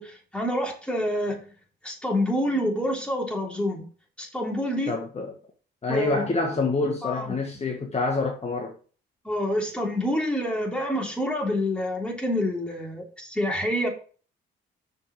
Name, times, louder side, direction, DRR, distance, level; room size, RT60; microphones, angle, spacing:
voice 1, 0.0-1.4 1.8-3.9 4.2-4.9 5.9-6.3 7.0-7.3 9.3-13.9, left 1 dB, 5° left, 3.4 m, -27 dB
voice 2, 4.9-5.3 5.8-8.8, left 3 dB, 30° left, 1.8 m, -27 dB
6.7 x 5.8 x 6.0 m
cardioid pair, 90°, 20 cm